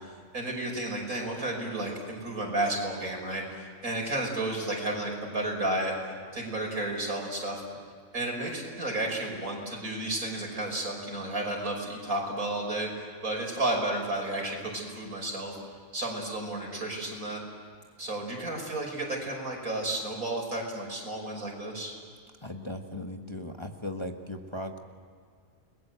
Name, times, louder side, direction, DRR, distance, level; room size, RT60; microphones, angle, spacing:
voice 1, 0.0-5.9 6.3-7.6 8.1-15.6 15.9-17.4 18.0-21.9, right 2 dB, 85° right, 0 dB, 6.2 m, -32 dB
voice 2, 22.4-24.8, left 1 dB, 20° left, 3 dB, 1.5 m, -37 dB
30.0 x 21.0 x 7.9 m, 2.1 s
omnidirectional pair, 1.4 m